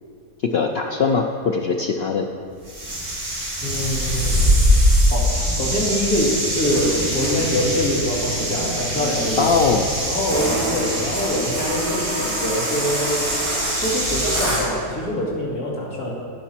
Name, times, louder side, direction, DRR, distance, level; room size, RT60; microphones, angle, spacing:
voice 1, 0.5-2.3 9.4-9.9, left 5 dB, 85° left, 2 dB, 0.5 m, -21 dB
sound 1, 2.6-14.7, equal, 70° right, 3.4 m, -22 dB
voice 2, 3.6-4.5 5.1-5.3 5.6-9.5 10.1-13.3 13.8-16.1, equal, 65° left, -5 dB, 2.7 m, -24 dB
17.5 x 6.0 x 4.3 m, 2.3 s
omnidirectional pair, 1.7 m